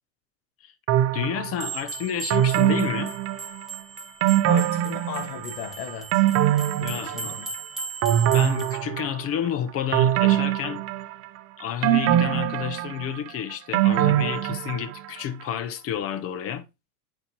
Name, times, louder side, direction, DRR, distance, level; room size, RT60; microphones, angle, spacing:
sound 1, 0.9-1.7 2.3-3.7 4.2-5.5 5.9-7.6 8.0-9.4 9.9-11.4 11.8-15.1 15.4-15.5, right 12 dB, 35° right, 0.5 m, -23 dB
voice 1, 1.1-3.1 6.8-7.4 8.3-10.8 11.6-16.7, left 9 dB, 30° left, 0.8 m, -30 dB
sound 2, 1.6-8.8, right 4 dB, ahead, 1.8 m, -38 dB
voice 2, 4.5-6.2 6.9-7.5, left 7 dB, 80° left, 1.8 m, -36 dB
11.0 x 4.4 x 2.9 m
supercardioid pair, 125°, 46 cm